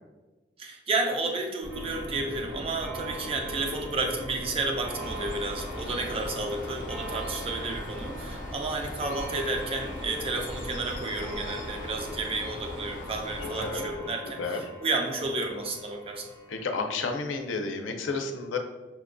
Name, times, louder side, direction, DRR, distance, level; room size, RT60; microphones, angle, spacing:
voice 1, 0.6-16.2, right 2 dB, 30° right, 3 dB, 0.4 m, -31 dB
sound 1, 1.6-14.1, equal, 70° right, 1.4 m, -41 dB
Clock, 1.7-17.8, right 1 dB, 50° right, 1.0 m, -44 dB
Bird, 4.9-13.7, left 1 dB, 45° left, 0.6 m, -42 dB
voice 2, 16.5-18.6, left 4 dB, 90° left, 4 dB, 0.5 m, -31 dB
5.7 x 2.2 x 2.4 m, 1.2 s
head